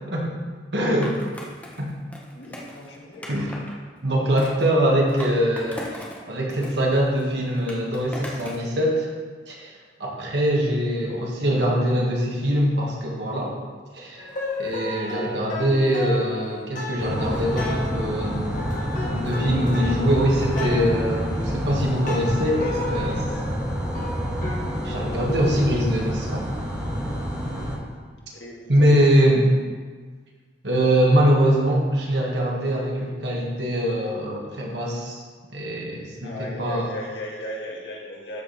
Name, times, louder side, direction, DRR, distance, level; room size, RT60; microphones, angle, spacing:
voice 1, 0.7-1.2 1.8-1.9 3.3-3.5 4.0-9.1 9.5-13.6 13.9-14.3 14.6-18.5 19.1-23.2 24.8-26.4 28.7-29.4 30.6-35.2 35.5-36.9, equal, 75° right, -2 dB, 1.9 m, -23 dB
Skateboard, 1.0-3.7 4.4-6.2 6.5-8.7, left 1 dB, 10° left, 1.1 m, -39 dB
voice 2, 2.3-3.3 22.5-23.4 28.3-29.2 36.2-38.4, left 1 dB, 75° left, -3 dB, 2.0 m, -36 dB
sound 1, 14.2-25.3, left 2 dB, 45° left, 1.7 m, -33 dB
sound 2, 17.0-27.8, equal, 20° right, 1.8 m, -28 dB
12.5 x 5.1 x 4.3 m, 1.5 s
head